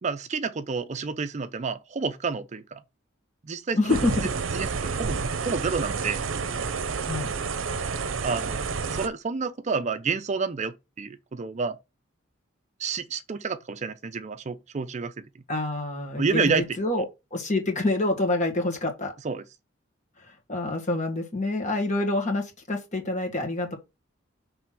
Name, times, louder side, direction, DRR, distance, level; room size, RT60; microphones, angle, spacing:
voice 1, 0.0-2.8 3.4-3.8 4.5-6.2 8.2-8.6 8.9-11.8 12.8-15.3 16.2-16.7 19.2-19.4, right 4 dB, 35° right, 0.4 m, -29 dB
voice 2, 3.7-4.3 7.0-7.3 15.5-17.1 17.3-19.1 20.2-23.8, left 2 dB, 40° left, 1.7 m, -27 dB
sound 1, 3.9-9.1, right 5 dB, 75° right, 0.7 m, -29 dB
6.3 x 3.3 x 5.9 m
head